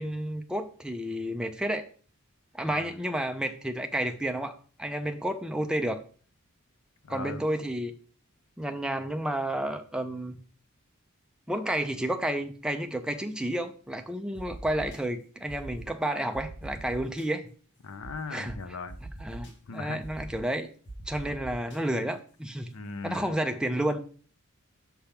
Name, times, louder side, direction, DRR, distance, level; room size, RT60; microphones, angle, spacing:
voice 1, 0.0-1.9 2.5-6.0 7.1-7.9 8.6-10.4 11.5-17.5 18.3-18.6 19.2-20.7 21.1-22.7 23.0-24.0, right 1 dB, 5° right, 0.4 m, -31 dB
voice 2, 7.0-7.4 17.8-19.0 19.7-20.0 21.2-21.3 22.7-23.4, left 4 dB, 70° left, 0.6 m, -39 dB
sound 1, 14.3-15.0 15.5-15.9 16.3-17.3 18.0-18.1 18.4-18.5 18.9-19.5 20.0-20.4 20.9-21.8, right 2 dB, 55° left, 1.5 m, -43 dB
5.8 x 3.5 x 5.7 m
head